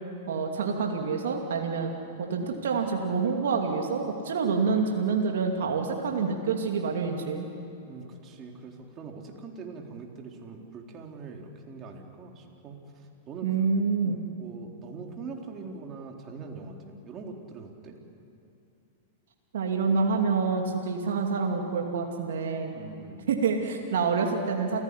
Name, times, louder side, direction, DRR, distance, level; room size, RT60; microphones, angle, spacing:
voice 1, 0.3-1.9 2.2-7.4 13.4-14.2 19.5-22.7 23.3-24.8, right 5 dB, 75° right, 2 dB, 2.7 m, -27 dB
voice 2, 7.9-12.8 13.3-13.5 14.0-18.0 22.7-23.2, right 4 dB, 35° right, 1 dB, 4.0 m, -42 dB
29.0 x 17.0 x 10.0 m, 2.9 s
hypercardioid pair, 105°, 0 cm